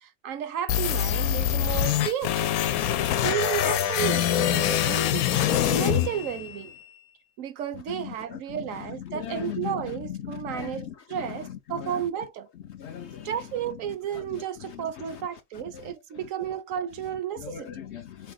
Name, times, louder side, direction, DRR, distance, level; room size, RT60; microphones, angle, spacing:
voice 1, 0.0-2.5 3.2-6.7 7.4-12.5 13.2-17.8, right 9 dB, 70° right, 0.9 m, -33 dB
sound 1, 0.7-6.7, left 11 dB, 80° left, 1.0 m, -24 dB
voice 2, 7.9-8.4 9.1-9.7 10.1-10.9 11.8-12.0 12.7-13.3 15.7-15.9 17.4-18.3, left 10 dB, 65° left, 0.7 m, -37 dB
4.8 x 2.7 x 3.8 m
omnidirectional pair, 1.5 m